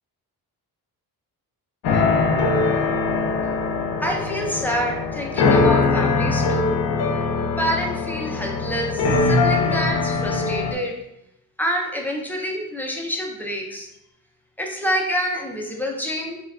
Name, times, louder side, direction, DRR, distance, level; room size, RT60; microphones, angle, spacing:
sound 1, 1.8-10.7, left 4 dB, 75° left, 0.5 m, -21 dB
voice 1, 4.0-6.7 7.6-10.9 11.6-13.9 14.6-16.4, equal, 5° left, 0 dB, 0.4 m, -27 dB
4.2 x 2.2 x 2.3 m, 0.83 s
wide cardioid pair, 140°, 37 cm